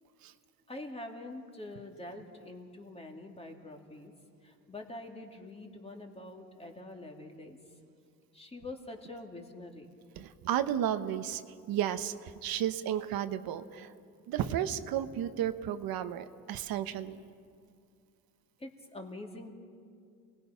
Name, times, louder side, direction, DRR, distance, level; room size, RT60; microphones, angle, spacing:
voice 1, 0.7-4.1 4.4-7.6 8.3-9.9 18.6-19.5, left 2 dB, 15° left, 2 dB, 2.6 m, -45 dB
voice 2, 10.2-11.4 11.7-13.9 14.3-17.2, right 10 dB, 75° right, 10 dB, 1.1 m, -33 dB
28.5 x 19.5 x 5.8 m, 2.3 s
cardioid pair, 110°, 36 cm